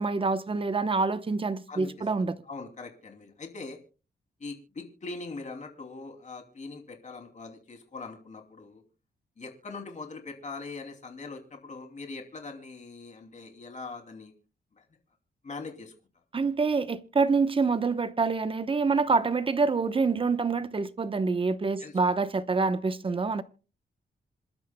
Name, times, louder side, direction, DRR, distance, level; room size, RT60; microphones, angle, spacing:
voice 1, 0.0-2.3 16.3-23.4, right 4 dB, 30° right, 0.9 m, -26 dB
voice 2, 2.4-3.8 4.4-8.8 9.4-14.3 14.8-14.9 15.4-15.9 21.8-21.9, left 3 dB, 45° left, 2.8 m, -41 dB
27.0 x 12.0 x 2.2 m
wide cardioid pair, 120°, 17 cm